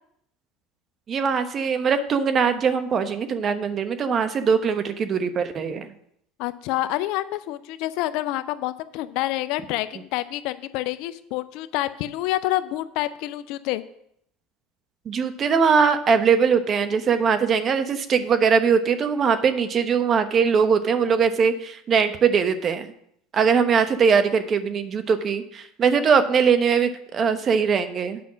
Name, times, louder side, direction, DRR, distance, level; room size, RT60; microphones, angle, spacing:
voice 1, 1.1-5.9 15.0-22.9 23.3-28.2, right 6 dB, 40° right, 9 dB, 1.0 m, -21 dB
voice 2, 6.4-13.8, left 16 dB, 65° left, 13 dB, 0.6 m, -28 dB
8.9 x 5.7 x 6.2 m, 0.73 s
hypercardioid pair, 80°, 0 cm